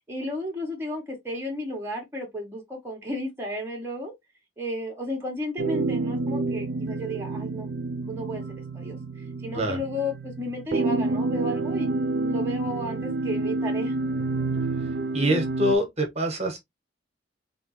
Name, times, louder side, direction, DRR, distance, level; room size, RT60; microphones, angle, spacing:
voice 1, 0.1-4.1 4.6-7.7 7.9-8.4 8.7-13.9, left 1 dB, 15° right, 1.2 m, -33 dB
sound 1, 5.6-15.8, right 3 dB, 60° right, 0.4 m, -28 dB
voice 2, 15.1-16.6, equal, 35° right, 1.3 m, -25 dB
3.9 x 3.4 x 3.0 m
head